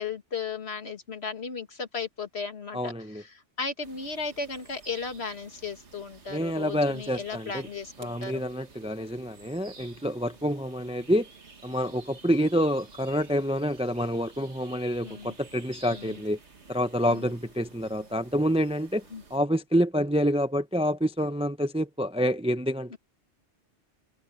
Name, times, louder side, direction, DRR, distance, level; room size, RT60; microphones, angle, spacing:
voice 1, 0.0-8.4 15.0-15.3 15.9-16.2 17.0-17.3 19.1-19.2 22.9-23.0, left 5 dB, 60° left, 2.2 m, -36 dB
voice 2, 2.7-3.2 6.3-7.7 8.0-11.3 11.6-16.4 16.7-19.0 19.3-23.0, equal, 5° right, 0.7 m, -27 dB
sound 1, 3.8-19.4, right 4 dB, 70° right, 2.2 m, -52 dB
omnidirectional pair, 1.2 m